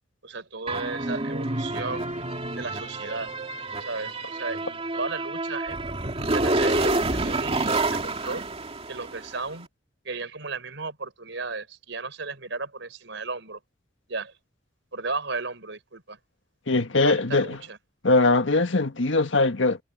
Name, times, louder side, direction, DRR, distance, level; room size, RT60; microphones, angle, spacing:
voice 1, 0.2-2.1 2.5-3.3 3.8-5.8 6.3-8.4 8.9-9.7 10.0-13.6 14.1-14.3 14.9-16.2 17.0-17.8, right 3 dB, 75° right, 5.2 m, -34 dB
sound 1, 0.7-9.4, right 2 dB, 35° right, 2.5 m, -28 dB
voice 2, 16.7-17.6 18.0-19.8, left 3 dB, 85° left, 1.6 m, -21 dB
head